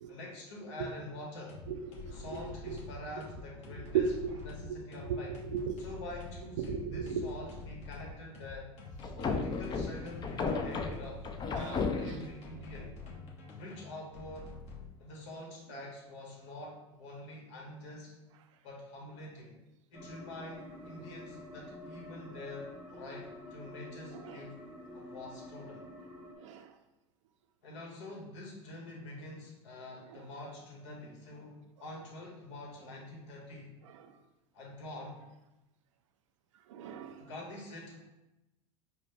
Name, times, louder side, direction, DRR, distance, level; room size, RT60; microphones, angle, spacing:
voice 1, 0.1-1.6 2.1-5.3 5.8-8.7 9.2-12.9 13.5-14.5 15.0-18.2 18.6-19.5 19.9-24.5 24.9-25.8 27.6-33.7 34.5-35.2 37.2-38.0, left 1 dB, 70° left, -2 dB, 1.3 m, -46 dB
sound 1, 1.4-11.5 12.2-14.9, left 3 dB, 45° left, 1.2 m, -47 dB
voice 2, 1.7-2.2 2.7-2.8 3.9-4.3 4.7-4.8 5.1-5.2 5.5-5.8 6.6-7.3 11.6-11.7 24.1-24.4 26.4-26.7 36.7-37.3, right 6 dB, 85° right, 8 dB, 0.4 m, -35 dB
sound 2, 9.0-12.4, left 4 dB, 30° left, 0.4 m, -34 dB
sound 3, 19.9-26.3, left 1 dB, 5° right, 0.8 m, -49 dB
5.0 x 2.1 x 3.3 m, 0.96 s
hypercardioid pair, 100°, 15 cm